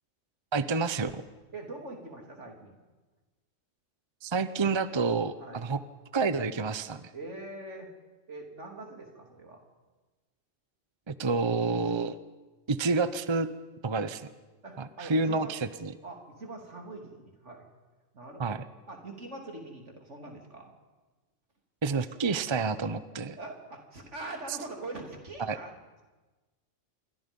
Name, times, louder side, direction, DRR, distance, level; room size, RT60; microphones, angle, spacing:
voice 1, 0.5-1.2 4.2-5.8 6.1-7.1 11.1-12.2 12.7-13.5 13.8-14.3 14.8-15.9 18.4-18.6 21.8-23.4 25.4-25.6, right 4 dB, 25° right, 13 dB, 0.7 m, -29 dB
voice 2, 1.5-2.8 5.4-5.7 7.1-7.9 8.3-9.6 14.6-15.5 16.0-17.7 18.1-18.6 18.9-20.7 23.4-25.7, right 2 dB, 70° right, 2 dB, 3.7 m, -43 dB
27.5 x 24.0 x 5.4 m, 1.2 s
omnidirectional pair, 1.3 m